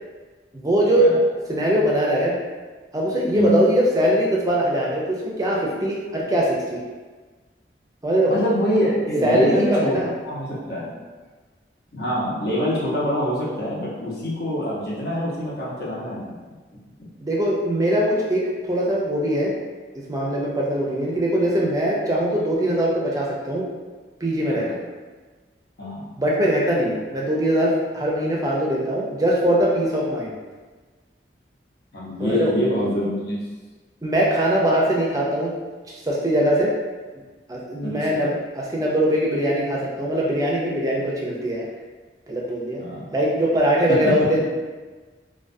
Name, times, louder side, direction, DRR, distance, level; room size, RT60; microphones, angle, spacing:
voice 1, 0.5-1.1 1.5-2.4 2.9-6.8 8.0-8.3 9.2-10.1 17.2-19.5 20.1-23.6 24.2-24.7 26.2-30.3 32.2-32.5 34.0-35.5 36.0-36.7 37.5-41.7 42.3-42.8 43.1-44.4, right 1 dB, 20° right, -4 dB, 0.4 m, -21 dB
voice 2, 8.3-10.9 11.9-16.4 24.5-24.7 25.8-26.1 31.9-33.4 37.8-38.3 42.8-43.1 43.9-44.3, equal, 60° left, -7 dB, 0.7 m, -25 dB
2.3 x 2.2 x 2.5 m, 1.3 s
head